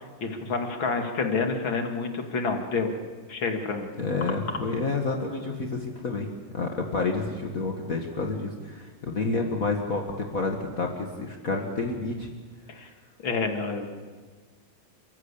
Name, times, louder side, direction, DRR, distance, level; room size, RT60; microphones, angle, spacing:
voice 1, 0.2-2.9 3.3-3.9 12.7-12.9 13.2-13.8, left 4 dB, 65° left, 4 dB, 2.9 m, -28 dB
voice 2, 4.0-6.3 6.5-10.9 11.2-12.3, left 3 dB, 40° left, 1 dB, 1.9 m, -29 dB
29.5 x 14.5 x 8.4 m, 1.4 s
omnidirectional pair, 2.4 m